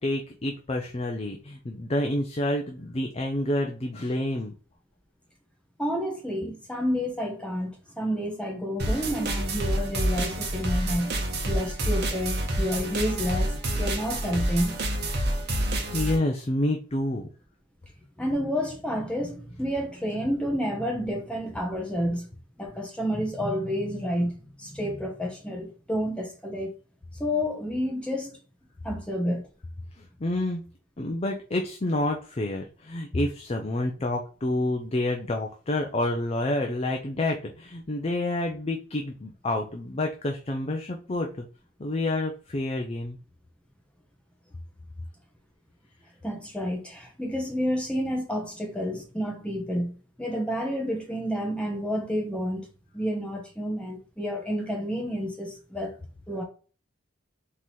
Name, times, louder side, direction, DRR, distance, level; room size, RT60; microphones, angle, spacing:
voice 1, 0.0-4.5 15.9-17.3 30.0-30.6 31.0-41.4 41.8-43.2, left 1 dB, 30° left, 0.5 m, -28 dB
voice 2, 5.8-11.1 11.4-13.5 13.8-14.7 18.2-22.3 22.6-26.7 27.2-28.4 28.8-29.5 46.2-49.9 50.2-52.7 52.9-55.9 56.3-56.4, equal, 5° left, 1.1 m, -30 dB
sound 1, 8.8-16.2, right 1 dB, 55° right, 1.0 m, -28 dB
3.9 x 3.1 x 4.1 m
head